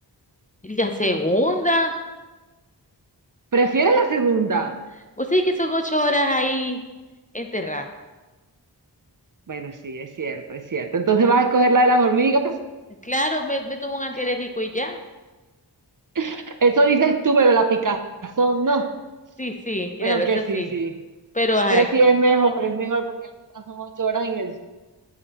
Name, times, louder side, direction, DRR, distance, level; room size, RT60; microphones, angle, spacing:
voice 1, 0.6-2.0 5.2-6.8 7.3-7.9 13.0-15.0 19.4-20.7 21.3-21.9, equal, 20° left, 4 dB, 0.4 m, -23 dB
voice 2, 3.5-4.8 9.5-12.6 16.2-18.9 20.0-21.0 21.7-23.1 23.5-24.6, right 3 dB, 50° right, 7 dB, 0.5 m, -20 dB
7.2 x 4.8 x 2.9 m, 1.2 s
wide cardioid pair, 40°, 43 cm